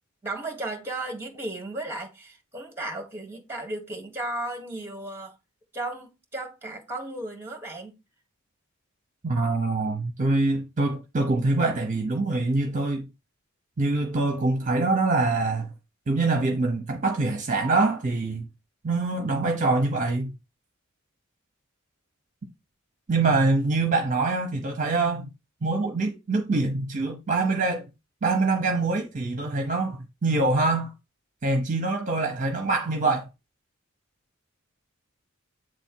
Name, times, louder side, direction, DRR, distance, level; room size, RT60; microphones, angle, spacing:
voice 1, 0.2-5.4 5.7-7.9, right 2 dB, 10° right, 1.6 m, -35 dB
voice 2, 9.2-13.0 13.8-15.7 16.1-18.4 18.8-20.3 23.1-25.3 25.6-27.8 28.2-30.9 31.4-33.3, right 3 dB, 40° right, 0.8 m, -24 dB
7.6 x 3.5 x 4.5 m
head